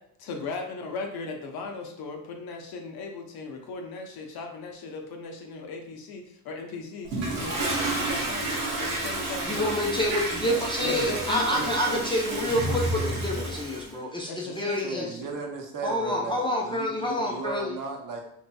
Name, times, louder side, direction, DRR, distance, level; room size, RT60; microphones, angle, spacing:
voice 1, 0.2-9.6 10.8-11.7 14.3-15.3, left 3 dB, 55° left, 3 dB, 0.7 m, -37 dB
Toilet flush, 7.1-13.9, right 2 dB, 80° right, 1.0 m, -30 dB
voice 2, 9.5-12.9 13.2-15.1 15.8-17.7, left 1 dB, 10° left, -3 dB, 0.5 m, -28 dB
voice 3, 10.4-13.6 14.8-18.2, right 4 dB, 45° right, 2 dB, 0.8 m, -37 dB
2.9 x 2.7 x 2.2 m, 0.76 s
hypercardioid pair, 70°, 46 cm